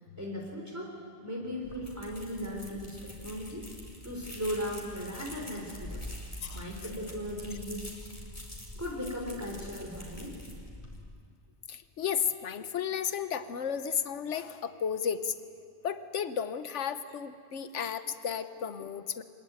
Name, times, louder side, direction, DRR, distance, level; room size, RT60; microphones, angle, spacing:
voice 1, 0.2-1.0 1.2-3.7 4.0-6.0 6.5-7.9 8.8-10.4, equal, 15° right, -2 dB, 3.6 m, -37 dB
sound 1, 1.6-11.0, left 1 dB, 30° left, 4.5 m, -45 dB
voice 2, 11.7-15.4 15.8-19.2, left 7 dB, 80° left, 11 dB, 1.3 m, -33 dB
25.5 x 21.0 x 8.9 m, 2.2 s
omnidirectional pair, 1.2 m